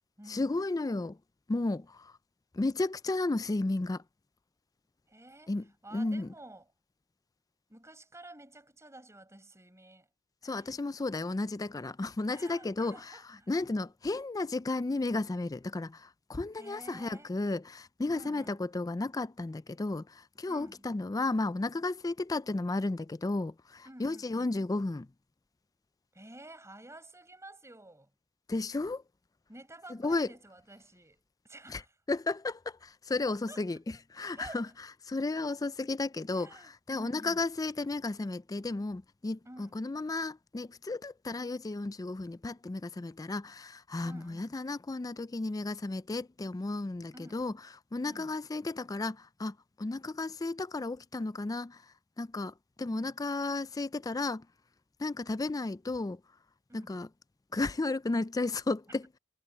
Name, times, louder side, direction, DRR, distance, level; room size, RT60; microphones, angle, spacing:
voice 1, 0.3-1.2 1.5-2.2 2.5-4.0 5.5-5.6 5.9-6.3 10.4-13.0 13.5-25.1 28.5-29.0 29.9-30.3 31.7-31.8 32.1-34.7 35.0-47.5 47.9-54.5 55.0-56.2 56.7-57.1 57.5-59.0, left 2 dB, 15° left, 0.3 m, -33 dB
voice 2, 5.1-5.5 5.8-6.7 7.7-10.1 10.4-10.7 12.3-13.5 16.5-17.4 18.1-18.6 20.5-20.9 23.8-24.5 26.1-28.1 29.5-31.9 33.5-33.6 34.3-34.7 36.3-37.4 39.4-39.8 44.0-44.6 47.1-47.5 48.0-48.3 52.9-53.1 56.7-57.0, right 1 dB, 15° right, 5.8 m, -51 dB
head